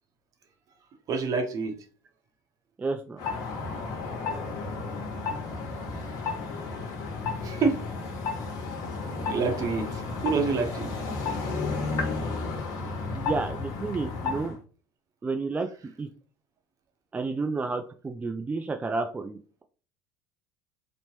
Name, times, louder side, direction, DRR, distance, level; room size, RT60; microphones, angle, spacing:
voice 1, 1.1-1.8 7.4-7.8 9.3-10.9, right 4 dB, 45° right, 5 dB, 0.8 m, -27 dB
voice 2, 2.8-3.2 13.1-14.6 15.2-15.7 16.0-16.1 17.1-19.6, right 3 dB, 15° right, 4 dB, 0.3 m, -31 dB
sound 1, 3.2-14.6, left 4 dB, 55° left, 0.9 m, -32 dB
2.9 x 2.0 x 3.0 m, 0.38 s
hypercardioid pair, 75°, 8 cm